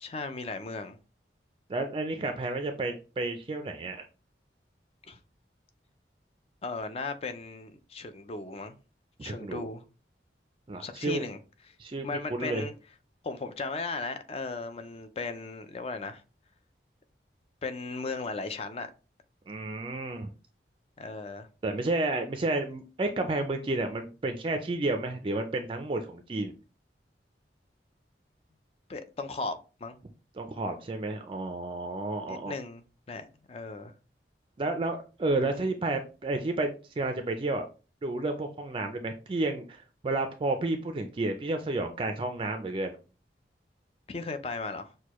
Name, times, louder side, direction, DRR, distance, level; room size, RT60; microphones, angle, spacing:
voice 1, 0.0-1.0 5.1-5.2 6.6-8.8 9.2-9.8 10.8-11.4 11.7-11.8 12.0-12.7 13.2-16.2 17.6-18.9 21.0-21.5 28.9-30.0 32.3-33.9 44.1-44.9, left 3 dB, 35° left, 0.4 m, -36 dB
voice 2, 1.7-4.0 9.2-9.7 10.7-11.2 11.8-12.6 19.5-20.3 21.6-26.5 30.4-32.5 34.6-37.7 38.0-42.9, right 2 dB, 30° right, 0.4 m, -31 dB
6.4 x 2.2 x 3.0 m
head